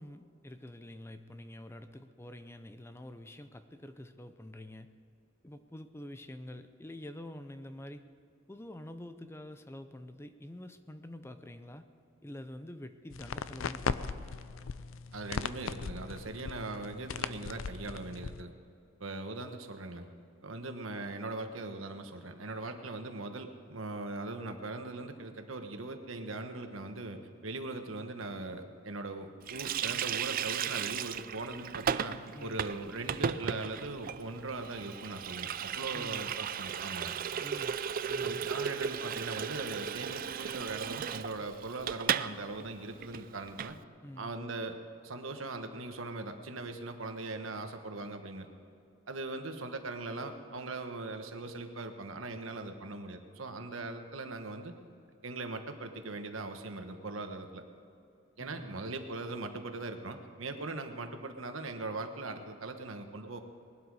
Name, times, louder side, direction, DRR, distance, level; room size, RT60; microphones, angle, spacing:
voice 1, 0.0-4.9 5.4-8.0 8.5-11.8 12.2-14.3 32.3-32.6 35.9-36.3 37.4-37.8 38.1-38.5 44.0-44.4 58.4-58.8, left 1 dB, 15° left, 9 dB, 0.6 m, -47 dB
sound 1, 13.1-18.4, left 5 dB, 80° left, 0.5 m, -38 dB
voice 2, 15.1-18.5 19.0-20.1 20.4-37.1 38.2-43.8 44.2-44.8 45.0-48.5 49.1-54.7 55.2-57.6 58.4-63.4, right 2 dB, 80° right, 6 dB, 1.3 m, -40 dB
Water tap faucet, 29.5-42.3 42.6-42.7 43.0-43.7, right 8 dB, 45° right, 0.4 m, -35 dB
20.0 x 12.0 x 4.9 m, 2.6 s
head